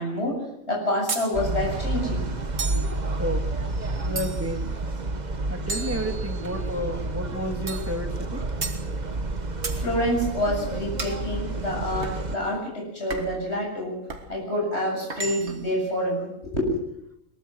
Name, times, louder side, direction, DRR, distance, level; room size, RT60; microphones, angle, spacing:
voice 1, 0.0-2.3 9.7-14.0 14.3-16.8, left 1 dB, 50° left, -1 dB, 7.9 m, -27 dB
sound 1, 1.1-1.3 2.6-2.9 4.2-4.6 5.7-6.6 7.7-7.9 8.6-8.8 9.6-9.8 11.0-11.2 12.0-12.2 13.1-13.4 14.1-14.3 15.1-15.7, right 4 dB, 55° right, 2.1 m, -33 dB
sound 2, 1.3-12.4, right 2 dB, 35° right, 1.3 m, -30 dB
voice 2, 3.2-3.7 4.0-4.8 5.5-8.4, equal, 10° right, 3 dB, 2.4 m, -31 dB
22.0 x 21.5 x 6.3 m, 0.80 s
omnidirectional pair, 1.4 m